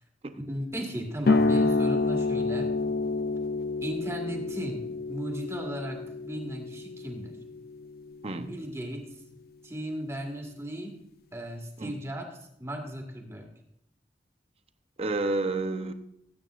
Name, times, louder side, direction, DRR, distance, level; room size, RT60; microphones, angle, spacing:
voice 1, 0.5-2.7 3.8-7.4 8.4-9.1 9.6-11.0 11.3-13.5, equal, 15° right, 2 dB, 1.8 m, -36 dB
sound 1, 1.3-8.4, left 3 dB, 55° left, 0.5 m, -28 dB
voice 2, 15.0-15.9, right 2 dB, 35° right, 8 dB, 0.8 m, -30 dB
19.0 x 8.8 x 2.5 m, 0.75 s
head